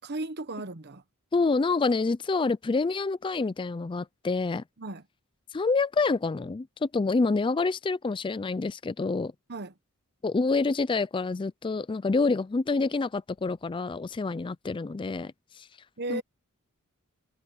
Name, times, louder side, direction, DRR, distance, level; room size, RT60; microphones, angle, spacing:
voice 1, 0.0-1.0 4.8-5.0 9.5-9.7 16.0-16.2, right 2 dB, 50° right, 1.1 m, -35 dB
voice 2, 1.3-4.6 5.5-9.3 10.2-15.7 16.1-16.2, left 3 dB, 20° left, 0.4 m, -27 dB
head